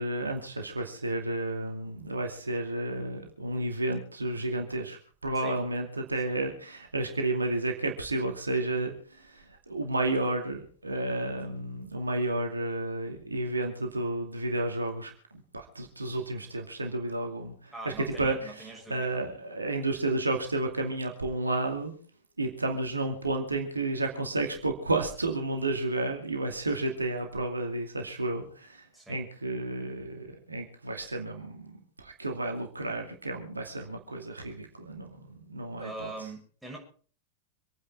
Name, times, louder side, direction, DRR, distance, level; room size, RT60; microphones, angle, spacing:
voice 1, 0.0-21.9 22.4-28.8 29.1-36.1, right 2 dB, 80° right, 4 dB, 2.4 m, -32 dB
voice 2, 17.7-19.2 28.9-29.2 35.8-36.8, right 3 dB, 5° right, -2 dB, 6.6 m, -42 dB
26.0 x 9.9 x 4.5 m, 0.42 s
figure-of-eight pair, 90°, 0 cm